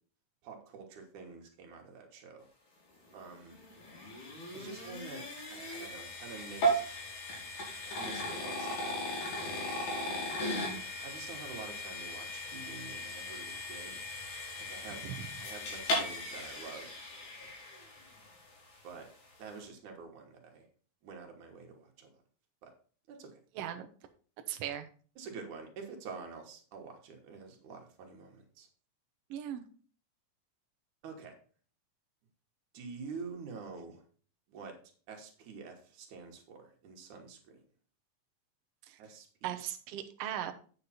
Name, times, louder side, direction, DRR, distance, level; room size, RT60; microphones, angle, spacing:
voice 1, 0.4-2.5 3.1-3.6 4.5-7.0 7.9-9.7 10.0-10.3 11.0-14.0 14.7-15.1 15.4-16.9 18.8-19.1 19.4-20.7 21.0-22.2 22.6-22.7 23.1-23.4 25.2-28.7 31.0-31.3 32.7-34.0 34.5-34.8 35.1-37.6 39.0-39.6, right 5 dB, 85° right, 2 dB, 2.8 m, -47 dB
sound 1, 3.1-18.3, equal, 80° left, 4.0 m, -37 dB
voice 2, 23.5-23.9 24.5-24.9 29.3-29.7 38.9-39.0 39.4-40.5, right 11 dB, 70° right, 7 dB, 1.6 m, -38 dB
8.5 x 6.6 x 4.2 m, 0.42 s
omnidirectional pair, 3.4 m